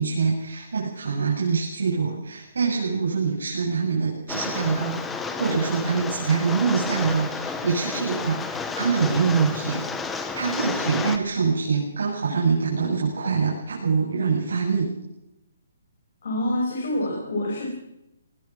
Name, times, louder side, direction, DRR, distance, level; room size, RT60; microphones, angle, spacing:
voice 1, 0.0-9.8 10.1-14.9, right 5 dB, 85° right, -5 dB, 7.5 m, -25 dB
Rain, 4.3-11.2, left 4 dB, 5° left, 0.9 m, -31 dB
voice 2, 16.2-17.7, left 1 dB, 55° left, -2 dB, 7.0 m, -26 dB
21.0 x 20.5 x 6.2 m, 0.88 s
hypercardioid pair, 180°, 0 cm